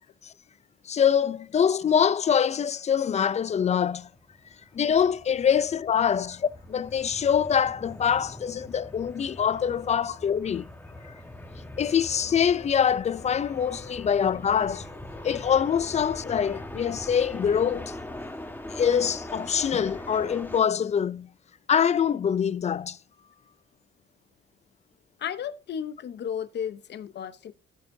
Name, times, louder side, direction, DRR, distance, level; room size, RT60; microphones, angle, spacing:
voice 1, 0.9-4.1 4.7-10.7 11.0-11.1 11.8-14.9 15.2-17.9 18.7-21.3 21.7-23.0, left 8 dB, 35° left, 0.4 m, -24 dB
sound 1, 3.5-20.6, left 1 dB, 10° left, 1.4 m, -42 dB
voice 2, 25.2-27.5, left 8 dB, 60° left, 0.8 m, -34 dB
10.5 x 9.2 x 2.7 m
cardioid pair, 90°, 20 cm